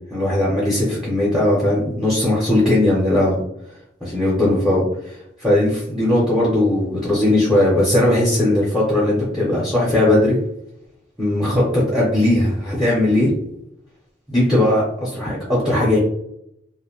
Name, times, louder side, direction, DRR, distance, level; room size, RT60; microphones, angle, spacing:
voice 1, 0.1-3.4 4.0-10.4 11.2-13.3 14.3-16.0, left 1 dB, ahead, -7 dB, 0.6 m, -18 dB
2.5 x 2.1 x 2.9 m, 0.76 s
head